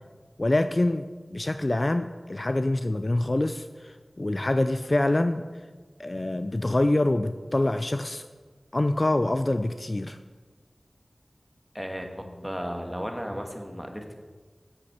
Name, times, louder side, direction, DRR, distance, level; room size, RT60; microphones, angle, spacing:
voice 1, 0.4-5.5 6.0-8.3 8.7-10.2, left 1 dB, 45° left, 9 dB, 0.4 m, -25 dB
voice 2, 11.7-14.1, equal, ahead, 3 dB, 1.5 m, -34 dB
8.6 x 8.0 x 5.9 m, 1.4 s
wide cardioid pair, 45°, 0 cm